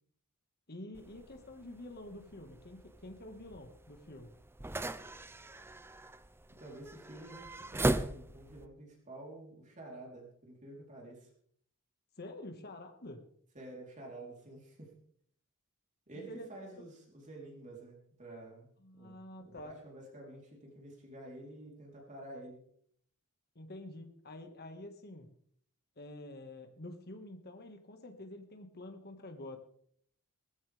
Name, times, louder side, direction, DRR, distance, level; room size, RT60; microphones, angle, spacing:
voice 1, 0.7-4.3 12.2-13.3 16.3-16.9 18.8-19.8 23.6-25.3 26.0-29.6, left 1 dB, 45° left, 6 dB, 1.9 m, -48 dB
sound 1, 0.9-8.7, right 1 dB, 10° right, 0.5 m, -39 dB
voice 2, 6.5-11.3 13.5-14.9 16.1-22.6, right 2 dB, 35° right, -1 dB, 3.9 m, -50 dB
18.5 x 15.0 x 3.5 m, 0.62 s
head